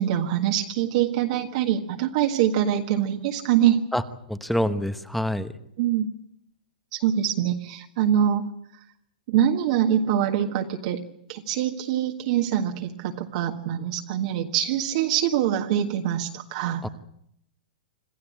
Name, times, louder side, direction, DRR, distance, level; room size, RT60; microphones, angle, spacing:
voice 1, 0.0-3.8 5.8-6.1 6.9-8.4 9.3-11.0 11.3-16.8, right 10 dB, 50° right, 3 dB, 1.7 m, -24 dB
voice 2, 4.3-5.5 16.8-16.9, equal, ahead, 11 dB, 0.9 m, -26 dB
26.5 x 14.0 x 8.8 m, 0.74 s
hypercardioid pair, 160°, 5 cm